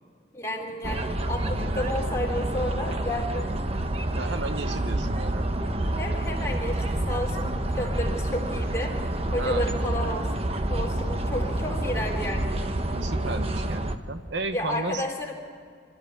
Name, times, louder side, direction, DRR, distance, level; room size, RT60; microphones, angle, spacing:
voice 1, 0.3-3.5 6.0-10.3 10.7-12.6 14.5-15.3, left 1 dB, 15° left, -2 dB, 3.7 m, -31 dB
sound 1, 0.8-14.0, right 1 dB, 30° right, 1.0 m, -28 dB
voice 2, 4.1-5.5 9.3-9.6 12.9-15.0, right 3 dB, 70° right, 8 dB, 1.1 m, -33 dB
26.5 x 14.0 x 8.7 m, 2.2 s
head